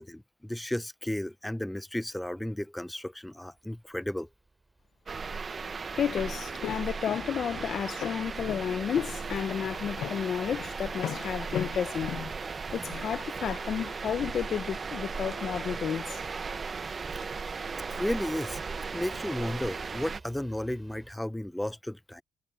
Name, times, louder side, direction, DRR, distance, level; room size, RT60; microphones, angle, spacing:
voice 1, 0.0-4.3 17.9-18.6 18.9-22.2, left 1 dB, 5° left, 0.5 m, -34 dB
sound 1, 3.5-21.2, right 3 dB, 20° right, 6.7 m, -59 dB
sound 2, 5.1-20.2, right 5 dB, 35° right, 1.1 m, -36 dB
Walk footsteps, 6.0-13.1, left 11 dB, 80° left, 0.4 m, -39 dB
voice 2, 6.0-12.2 12.7-16.2, left 8 dB, 60° left, 0.7 m, -32 dB
cardioid pair, 95°, 0 cm